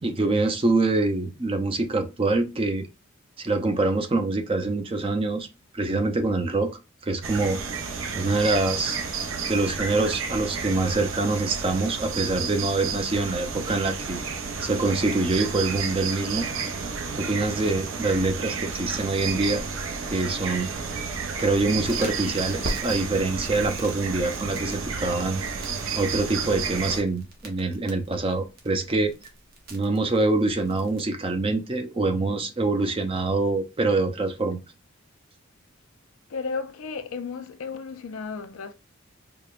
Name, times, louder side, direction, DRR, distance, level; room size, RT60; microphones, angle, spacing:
voice 1, 0.0-2.9 3.4-5.5 5.7-7.6 8.1-9.0 9.5-14.2 14.6-16.5 17.1-19.6 20.1-20.7 21.4-25.4 26.0-29.1 29.7-34.6, right 2 dB, 25° right, 0.5 m, -25 dB
sound 1, 7.2-27.0, right 5 dB, 75° right, 0.7 m, -31 dB
Crackle, 21.8-31.0, right 1 dB, 45° right, 0.9 m, -42 dB
voice 2, 36.3-38.7, left 5 dB, 80° left, 0.5 m, -33 dB
4.8 x 2.2 x 2.4 m
head